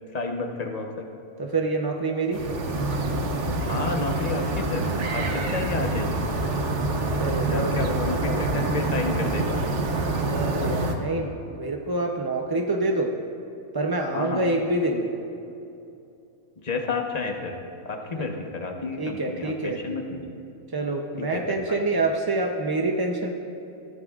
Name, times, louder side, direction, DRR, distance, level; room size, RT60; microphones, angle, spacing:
voice 1, 0.1-1.1 3.7-4.9 5.1-6.2 7.5-9.6 14.1-14.4 16.6-17.6 17.8-20.3 21.2-21.4 21.7-21.9, left 3 dB, 30° left, 3 dB, 1.0 m, -31 dB
voice 2, 1.4-2.4 7.2-8.5 10.3-13.2 13.7-15.2 18.1-18.3 19.0-19.8 20.7-23.3, right 2 dB, 35° right, 2 dB, 0.4 m, -27 dB
sound 1, 2.3-10.9, right 2 dB, 55° right, 1.3 m, -26 dB
20.5 x 13.5 x 2.4 m, 2.7 s
omnidirectional pair, 1.5 m